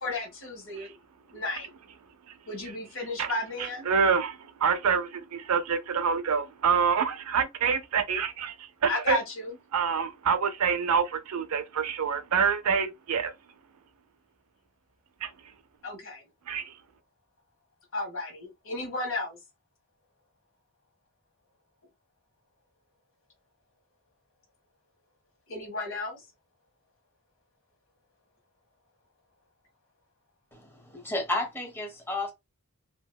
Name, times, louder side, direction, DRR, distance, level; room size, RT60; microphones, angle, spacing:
voice 1, 0.0-0.9 1.3-1.7 2.5-3.9 8.9-9.5 15.8-16.2 17.9-19.4 25.5-26.3, left 2 dB, 65° left, 1.5 m, -33 dB
voice 2, 3.6-9.2 9.7-13.3 15.2-15.3 16.5-16.7, right 6 dB, 90° right, 0.5 m, -27 dB
voice 3, 30.5-32.3, left 2 dB, 10° left, 0.8 m, -32 dB
2.9 x 2.8 x 2.2 m
head